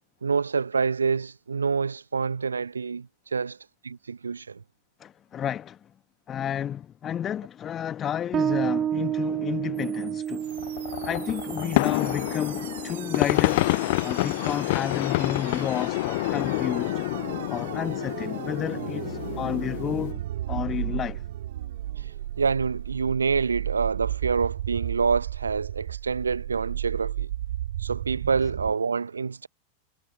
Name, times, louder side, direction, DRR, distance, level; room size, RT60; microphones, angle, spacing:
voice 1, 0.2-3.6 3.8-4.6 22.0-22.1 22.4-27.3 27.8-29.5, right 5 dB, 75° right, 0.8 m, -27 dB
voice 2, 5.0-5.8 6.3-10.4 11.0-13.7 14.0-17.1 17.5-21.2, left 9 dB, 25° left, 1.4 m, -31 dB
Bass guitar, 8.3-15.5, right 10 dB, 25° right, 0.5 m, -32 dB
sound 1, 9.8-28.7, right 12 dB, 60° right, 2.6 m, -35 dB
sound 2, 10.5-20.1, left 21 dB, 50° left, 0.4 m, -28 dB
figure-of-eight pair, 90°, 0 cm